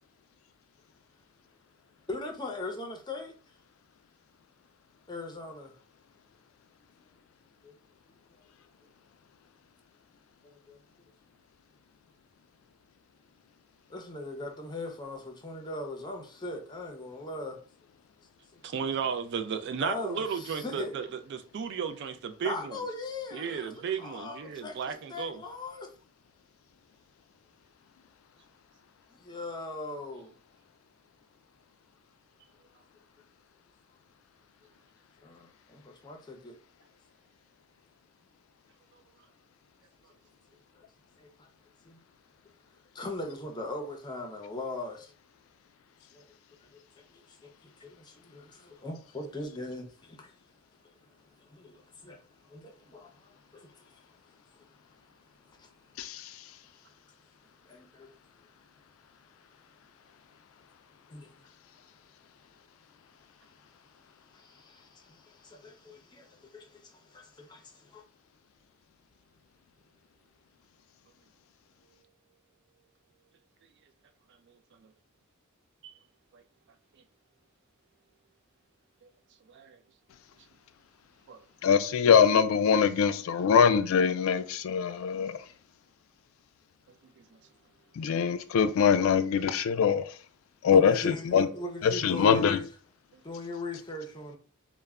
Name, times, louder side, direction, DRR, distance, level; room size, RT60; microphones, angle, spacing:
voice 1, 2.1-3.4 5.1-5.7 7.6-7.7 10.4-10.8 13.9-17.6 18.5-18.6 19.8-21.0 22.4-25.9 29.1-30.3 35.2-36.6 40.7-40.8 41.2-41.5 41.8-42.0 42.9-45.1 46.1-46.2 46.6-46.8 47.1-50.3 51.4-54.1 54.5-54.7 55.6-55.7 57.6-58.1 61.1-61.5 64.3-68.0 90.7-92.6 93.2-94.4, left 2 dB, 20° left, 0.5 m, -40 dB
voice 2, 18.6-22.8 23.3-25.4 74.5-74.6 75.8-75.9 76.3-76.4 76.9-77.0 79.0-79.1 79.5-79.8 81.3-81.4 93.1-93.2, right 6 dB, 55° right, 0.4 m, -34 dB
voice 3, 56.0-56.3 81.6-85.4 88.0-90.1 90.6-91.5 91.8-92.6, left 7 dB, 70° left, 0.3 m, -23 dB
2.1 x 2.1 x 3.5 m
head